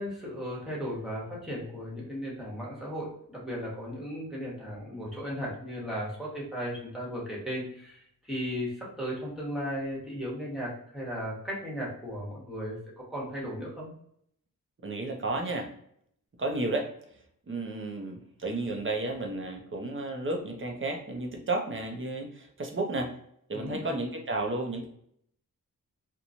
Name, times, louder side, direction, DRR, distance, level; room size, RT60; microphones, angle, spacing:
voice 1, 0.0-12.8 13.1-13.9 23.5-24.0, equal, ahead, -6 dB, 1.1 m, -36 dB
voice 2, 14.8-15.7 16.4-16.9 17.5-23.1 23.5-24.9, right 2 dB, 35° right, 2 dB, 0.6 m, -32 dB
3.0 x 2.2 x 2.5 m, 0.68 s
wide cardioid pair, 125°, 35 cm